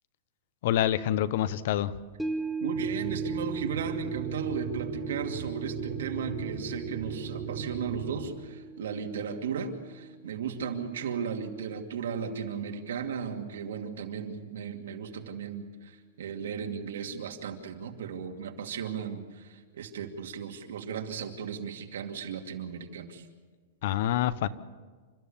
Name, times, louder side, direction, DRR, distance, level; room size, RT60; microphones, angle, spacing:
voice 1, 0.6-1.9 23.8-24.5, left 11 dB, 50° left, 16 dB, 0.8 m, -26 dB
sound 1, 2.2-12.6 12.9-13.0, right 4 dB, ahead, 1.2 m, -39 dB
voice 2, 2.6-23.3, right 6 dB, 90° right, 3 dB, 2.5 m, -36 dB
sound 2, 2.7-8.3, right 6 dB, 45° right, 3.4 m, -37 dB
28.5 x 14.0 x 7.3 m, 1.5 s
supercardioid pair, 170°, 0 cm